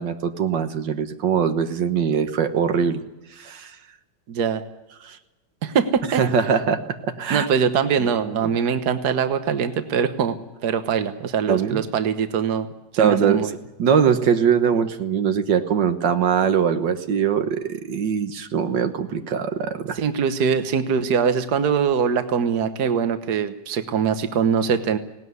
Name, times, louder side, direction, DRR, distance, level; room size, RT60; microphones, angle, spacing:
voice 1, 0.0-3.0 3.4-3.7 5.0-5.2 6.2-7.5 8.3-8.5 11.5-11.8 13.0-13.5 13.8-20.0, right 7 dB, 85° right, 8 dB, 1.9 m, -22 dB
voice 2, 4.3-4.6 5.6-6.2 7.3-12.7 12.9-13.6 19.9-25.0, right 6 dB, 65° right, 9 dB, 1.7 m, -22 dB
19.0 x 18.0 x 9.6 m, 1.0 s
omnidirectional pair, 1.9 m